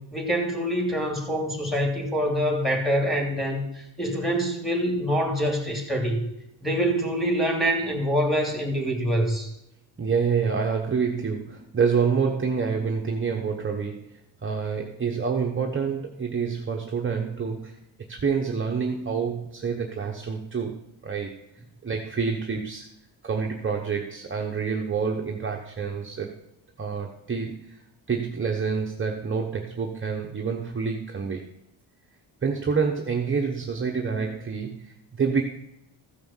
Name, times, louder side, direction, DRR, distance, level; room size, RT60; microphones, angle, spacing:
voice 1, 0.0-6.3 6.6-9.5, equal, ahead, 1 dB, 2.8 m, -25 dB
voice 2, 10.0-17.7 18.1-21.4 21.8-22.9 23.2-26.3 26.8-27.8 28.1-31.5 32.4-35.4, right 5 dB, 25° right, 1 dB, 1.0 m, -27 dB
14.5 x 6.1 x 7.3 m, 0.84 s
wide cardioid pair, 165°, 47 cm